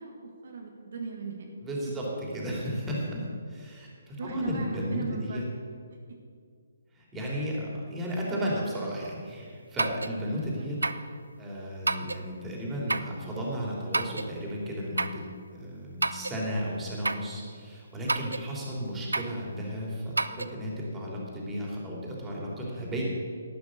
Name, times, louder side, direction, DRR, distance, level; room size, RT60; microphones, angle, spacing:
voice 1, 0.0-1.5 1.9-2.0 4.2-5.4 5.9-6.2 10.5-10.8, right 4 dB, 60° right, 1 dB, 1.6 m, -38 dB
voice 2, 1.6-2.0 2.3-5.4 6.9-10.8 11.4-15.2 15.5-23.0, equal, 10° right, -4 dB, 3.3 m, -34 dB
sound 1, 9.8-10.2 10.8-11.1 11.9-12.2 12.9-13.2 13.9-14.3 15.0-15.2 16.0-16.4 17.0-17.3 18.1-18.5 19.1-19.4 20.2-20.5, right 2 dB, 85° right, 0.6 m, -29 dB
12.0 x 8.9 x 6.5 m, 2.2 s
figure-of-eight pair, 140°, 0 cm